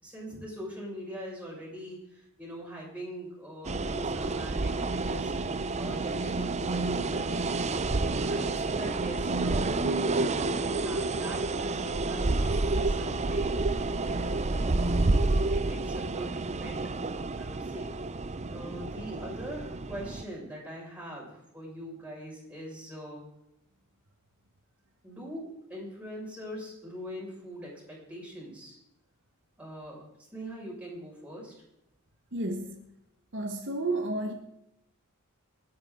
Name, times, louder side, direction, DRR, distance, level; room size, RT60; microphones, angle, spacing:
voice 1, 0.0-7.7 8.1-9.6 10.0-15.2 15.5-16.8 17.4-17.9 18.5-23.2 25.0-28.8 29.6-30.0 30.3-31.5, equal, 5° right, -4 dB, 6.4 m, -42 dB
sound 1, 3.6-20.2, right 2 dB, 30° right, 0.6 m, -29 dB
voice 2, 32.3-32.8 33.3-34.3, right 2 dB, 55° right, 3 dB, 1.5 m, -31 dB
28.5 x 9.6 x 3.9 m, 0.85 s
head